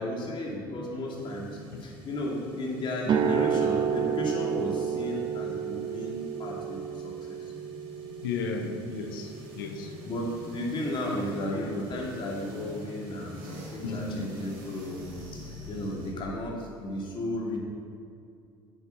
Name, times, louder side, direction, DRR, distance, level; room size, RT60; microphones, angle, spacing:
voice 1, 0.0-6.8 7.0-7.4 10.0-15.1 15.5-17.6, left 1 dB, 45° left, -2 dB, 2.5 m, -34 dB
sound 1, 1.1-16.1, left 2 dB, 90° right, 2.0 m, -47 dB
sound 2, 3.0-11.1, right 8 dB, 40° right, 0.6 m, -31 dB
voice 2, 8.2-9.9 13.8-14.3, left 4 dB, 85° left, 4 dB, 0.9 m, -34 dB
8.1 x 7.3 x 5.5 m, 2.5 s
hypercardioid pair, 75°, 11 cm